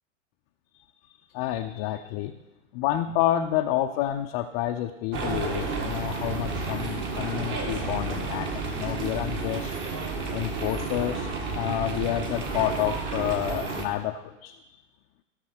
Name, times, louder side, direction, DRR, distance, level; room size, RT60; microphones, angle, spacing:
voice 1, 1.3-2.4 2.7-9.7 10.3-14.6, left 13 dB, 30° left, 4 dB, 0.5 m, -29 dB
sound 1, 5.1-13.9, right 4 dB, 30° right, 1.7 m, -31 dB
15.5 x 6.7 x 4.4 m, 0.97 s
figure-of-eight pair, 105°, 39 cm